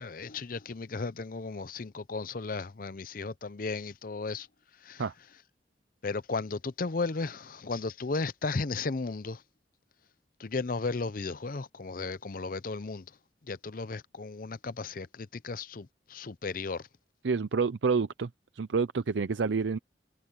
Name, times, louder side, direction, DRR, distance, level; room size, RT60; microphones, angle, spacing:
voice 1, 0.0-4.5 4.8-5.0 6.0-9.4 10.4-13.0 13.5-16.9, left 3 dB, 50° left, 0.6 m, -35 dB
voice 2, 17.2-18.3 18.6-19.8, right 5 dB, 90° right, 0.6 m, -28 dB
head